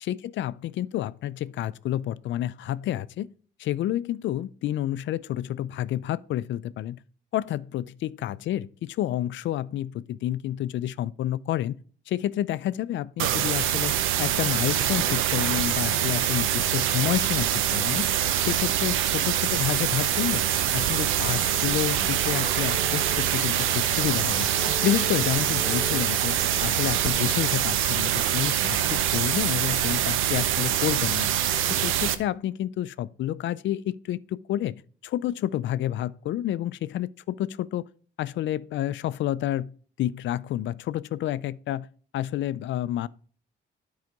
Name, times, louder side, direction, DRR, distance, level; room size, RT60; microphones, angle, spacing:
voice 1, 0.0-3.3 3.6-7.0 7.3-11.8 12.1-18.1 18.4-20.4 20.7-24.5 24.8-31.3 31.7-37.9 38.2-39.7 40.0-41.9 42.1-43.1, left 12 dB, 70° left, 0.4 m, -29 dB
sound 1, 13.2-32.1, right 11 dB, 85° right, 0.7 m, -24 dB
sound 2, 20.1-27.3, left 5 dB, 30° left, 1.0 m, -42 dB
9.5 x 4.8 x 5.2 m
cardioid pair, 90°, 20 cm